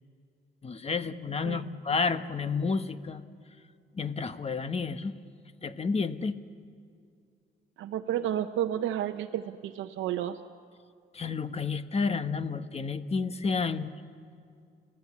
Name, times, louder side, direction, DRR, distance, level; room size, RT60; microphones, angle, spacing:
voice 1, 0.6-3.2 3.9-5.1 5.6-6.4 11.1-13.9, left 4 dB, 30° left, 11 dB, 1.1 m, -30 dB
voice 2, 7.8-10.4, right 11 dB, 85° right, 6 dB, 0.7 m, -31 dB
29.5 x 15.5 x 8.5 m, 2.3 s
cardioid pair, 90°, 20 cm